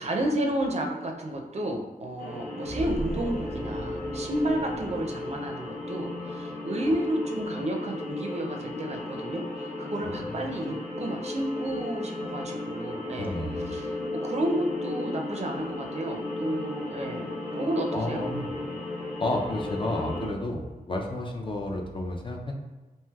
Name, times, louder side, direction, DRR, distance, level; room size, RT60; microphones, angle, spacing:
voice 1, 0.0-13.4 13.7-18.3, right 1 dB, 45° right, 2 dB, 0.4 m, -31 dB
sound 1, 2.2-20.3, left 2 dB, 80° left, 1.0 m, -35 dB
sound 2, 2.7-6.1, right 1 dB, 5° left, 0.7 m, -38 dB
voice 2, 10.0-10.6 13.2-13.8 17.9-18.5 19.2-22.5, left 1 dB, 35° left, 1 dB, 0.4 m, -32 dB
3.2 x 2.7 x 2.3 m, 1.2 s
wide cardioid pair, 80°, 15 cm